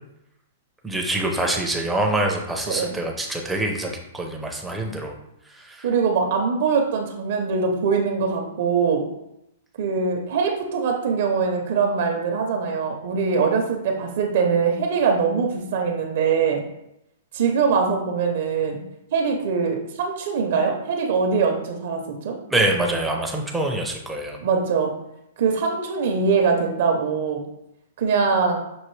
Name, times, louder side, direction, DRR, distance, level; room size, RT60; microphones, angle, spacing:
voice 1, 0.8-5.2 5.5-5.9 22.5-24.4, right 1 dB, 5° right, 1 dB, 0.6 m, -25 dB
voice 2, 5.8-9.0 9.8-16.6 17.3-18.8 19.1-22.4 24.4-24.9 25.4-27.4 28.0-28.6, right 5 dB, 55° right, 3 dB, 0.6 m, -22 dB
6.1 x 2.6 x 3.1 m, 0.83 s
hypercardioid pair, 160°, 0 cm